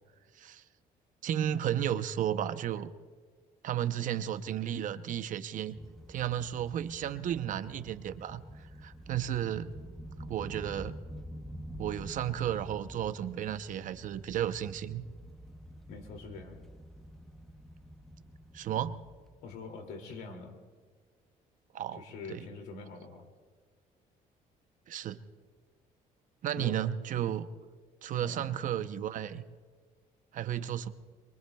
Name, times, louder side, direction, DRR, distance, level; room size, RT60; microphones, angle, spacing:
voice 1, 1.2-2.9 3.6-5.8 6.1-8.4 8.8-9.7 10.3-10.9 11.8-15.0 18.5-19.0 21.7-22.0 22.3-22.5 24.9-25.2 26.4-27.4 28.0-29.4 30.3-30.9, right 10 dB, 60° right, 12 dB, 0.6 m, -33 dB
sound 1, 5.8-19.6, equal, ahead, 0.8 m, -47 dB
voice 2, 15.9-16.6 19.4-20.6 22.0-23.3 26.6-26.8 28.2-28.5, left 4 dB, 90° left, 3 dB, 2.4 m, -44 dB
26.0 x 23.0 x 2.3 m, 1.5 s
cardioid pair, 120°, 15 cm